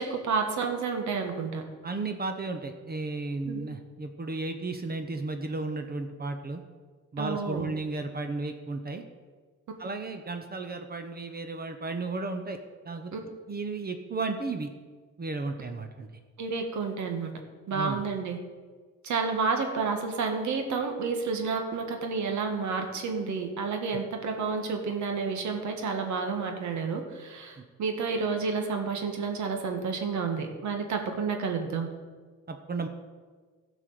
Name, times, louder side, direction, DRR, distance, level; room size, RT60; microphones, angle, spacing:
voice 1, 0.0-1.6 3.5-3.6 7.2-7.7 13.1-13.2 16.4-17.3 17.7-18.4 19.0-31.9, right 5 dB, 70° right, 4 dB, 1.7 m, -30 dB
voice 2, 1.8-6.6 7.1-9.0 9.8-12.6 12.8-13.1 13.5-14.7 15.2-16.1 17.7-18.0 27.6-27.7 32.5-32.9, right 3 dB, 30° right, 6 dB, 0.9 m, -34 dB
12.0 x 5.0 x 7.8 m, 1.5 s
cardioid pair, 90°, 30 cm